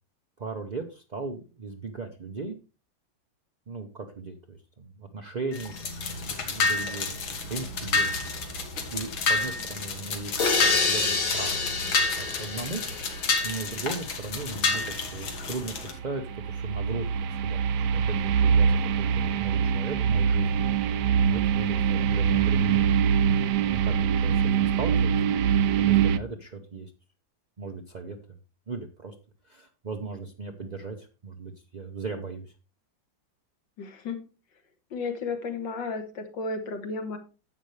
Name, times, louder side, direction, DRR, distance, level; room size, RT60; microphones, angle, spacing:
voice 1, 0.4-2.5 3.7-8.2 8.9-11.6 12.0-12.8 13.4-20.6 21.3-23.0 23.6-25.4 25.8-26.9 27.6-28.2 28.7-29.1 29.4-32.5, right 3 dB, 45° right, 3 dB, 0.5 m, -37 dB
sound 1, 5.5-15.9, left 3 dB, 85° left, 2.4 m, -30 dB
sound 2, 10.4-14.1, left 4 dB, 50° left, 1.7 m, -28 dB
sound 3, 15.5-26.2, right 7 dB, 70° right, 1.1 m, -24 dB
voice 2, 33.8-34.2 34.9-37.2, left 4 dB, 70° left, 6 dB, 2.2 m, -33 dB
11.0 x 7.9 x 3.2 m, 0.31 s
omnidirectional pair, 2.1 m